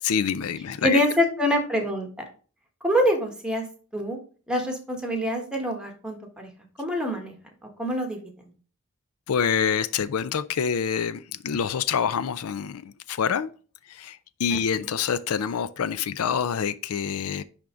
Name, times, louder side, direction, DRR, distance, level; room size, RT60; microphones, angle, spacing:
voice 1, 0.0-1.0 9.3-13.5 13.9-17.4, left 7 dB, 80° left, 0.4 m, -26 dB
voice 2, 0.8-2.1 2.8-3.6 3.9-4.2 4.5-6.5 6.8-7.3 7.8-8.2 14.5-14.6, equal, 5° right, 1.5 m, -25 dB
10.5 x 3.7 x 3.7 m
head